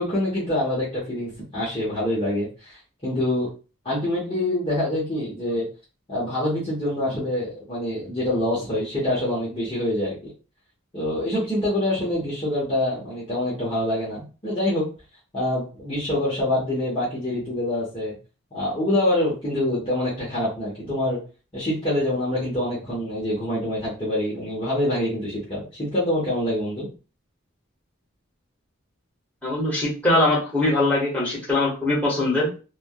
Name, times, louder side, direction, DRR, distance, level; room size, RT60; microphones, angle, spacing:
voice 1, 0.0-3.5 3.8-5.6 6.1-10.1 10.9-14.9 15.3-18.2 18.5-21.2 21.5-26.9, left 1 dB, 25° left, -8 dB, 1.0 m, -25 dB
voice 2, 29.4-32.5, left 2 dB, 5° left, -8 dB, 1.3 m, -22 dB
3.3 x 2.2 x 2.3 m, 0.34 s
head